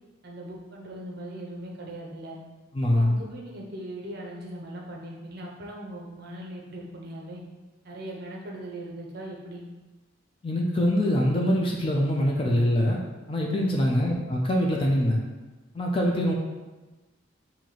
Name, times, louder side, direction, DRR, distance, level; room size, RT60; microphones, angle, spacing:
voice 1, 0.2-2.4 2.9-7.4 7.8-9.6, right 1 dB, 50° right, -2 dB, 0.6 m, -39 dB
voice 2, 2.7-3.2 10.4-13.0 13.3-15.2 15.7-16.3, left 1 dB, 25° left, -1 dB, 0.4 m, -24 dB
3.0 x 2.7 x 4.0 m, 1.2 s
head